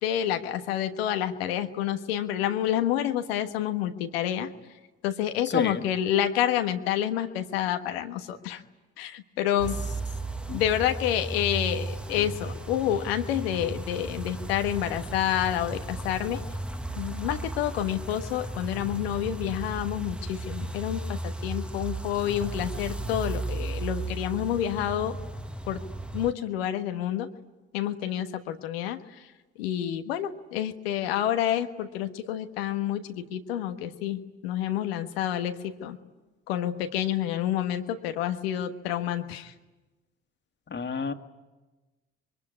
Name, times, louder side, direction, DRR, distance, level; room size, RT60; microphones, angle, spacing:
voice 1, 0.0-4.5 5.0-8.6 9.0-9.7 10.5-16.4 17.0-25.2 25.7-25.8 26.1-27.3 27.7-29.3 29.6-36.0 36.5-39.5, left 11 dB, 85° left, 7 dB, 1.3 m, -28 dB
sound 1, 9.6-26.3, right 2 dB, 5° right, 1.5 m, -35 dB
voice 2, 40.7-41.1, left 5 dB, 35° left, 7 dB, 2.0 m, -28 dB
26.5 x 23.0 x 9.6 m, 1.2 s
hypercardioid pair, 50°, 30 cm